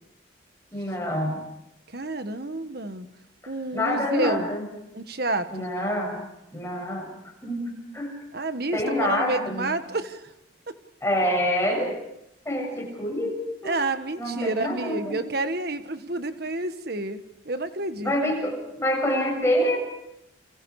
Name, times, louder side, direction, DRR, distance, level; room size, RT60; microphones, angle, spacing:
voice 1, 0.7-1.4 3.7-4.7 5.5-6.2 6.5-7.1 7.4-8.1 8.7-9.7 11.0-11.9 12.5-13.7 14.2-15.2 18.0-19.8, left 1 dB, 15° left, 0 dB, 7.4 m, -26 dB
voice 2, 1.9-3.1 3.5-4.5 4.9-5.7 8.3-10.3 10.7-10.8 13.6-18.1, right 2 dB, 50° right, 9 dB, 1.5 m, -29 dB
29.5 x 26.0 x 4.9 m, 0.84 s
head